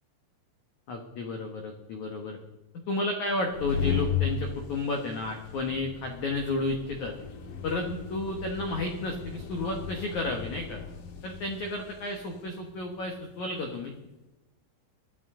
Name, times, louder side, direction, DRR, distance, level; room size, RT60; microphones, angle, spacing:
voice 1, 0.9-2.4 2.9-7.1 7.6-10.8 11.2-13.9, left 2 dB, 80° left, 3 dB, 1.7 m, -32 dB
sound 1, 3.4-13.8, left 6 dB, 65° left, 2.4 m, -36 dB
21.5 x 12.5 x 3.8 m, 1.0 s
omnidirectional pair, 5.6 m